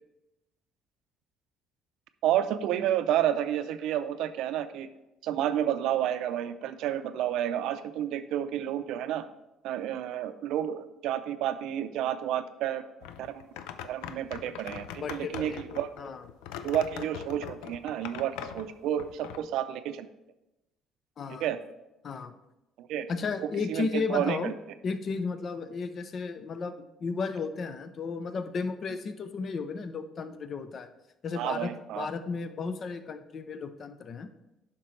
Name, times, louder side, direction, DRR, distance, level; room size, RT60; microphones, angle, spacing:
voice 1, 2.2-4.9 5.2-9.2 9.6-12.8 13.2-13.5 13.8-15.9 16.6-20.1 21.4-21.6 22.8-23.1 23.4-24.5 31.4-32.1, right 11 dB, 80° right, 11 dB, 0.5 m, -30 dB
sound 1, 13.0-19.4, left 9 dB, 90° left, 0.4 m, -42 dB
voice 2, 15.0-16.3 16.9-17.0 21.2-21.5 22.0-22.3 23.1-24.5 24.8-30.9 31.2-34.3, left 4 dB, 50° left, 10 dB, 0.6 m, -34 dB
9.8 x 5.9 x 3.2 m, 0.94 s
cardioid pair, 90°, 0 cm